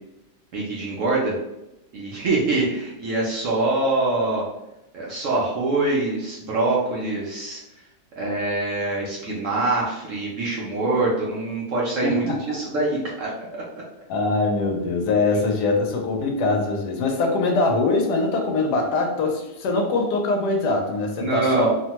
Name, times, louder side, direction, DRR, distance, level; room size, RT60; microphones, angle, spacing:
voice 1, 0.5-1.3 1.9-4.4 4.9-7.6 8.2-13.8 21.2-21.7, right 2 dB, 65° right, -4 dB, 0.8 m, -24 dB
voice 2, 12.0-12.4 14.1-21.7, left 3 dB, 85° left, 2 dB, 1.2 m, -22 dB
3.0 x 2.1 x 2.8 m, 0.92 s
omnidirectional pair, 1.8 m